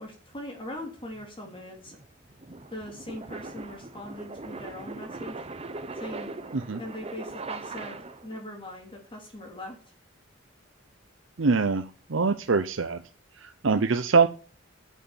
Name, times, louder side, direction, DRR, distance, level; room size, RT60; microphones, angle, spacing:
voice 1, 0.0-2.0 2.7-5.5 6.0-6.4 6.8-9.8, left 1 dB, 25° left, 1 dB, 2.8 m, -41 dB
sound 1, 0.8-8.4, right 3 dB, 30° right, 0.9 m, -40 dB
voice 2, 11.4-11.8 12.1-13.0 13.4-14.3, right 4 dB, 70° right, 8 dB, 0.7 m, -23 dB
11.0 x 6.4 x 7.1 m, 0.39 s
head